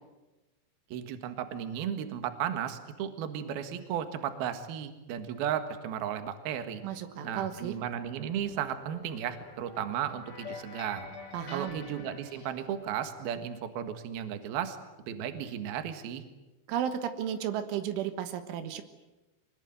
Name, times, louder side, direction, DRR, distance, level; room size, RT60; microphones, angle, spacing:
voice 1, 0.9-6.8 7.2-11.1 11.5-14.8 15.1-16.2, right 9 dB, 65° right, 8 dB, 3.2 m, -35 dB
voice 2, 6.8-7.8 11.3-11.8 16.7-18.8, right 9 dB, 90° right, 9 dB, 3.9 m, -33 dB
sound 1, 7.2-12.7, left 4 dB, 25° left, 2.7 m, -47 dB
24.5 x 21.0 x 9.4 m, 1.1 s
omnidirectional pair, 5.4 m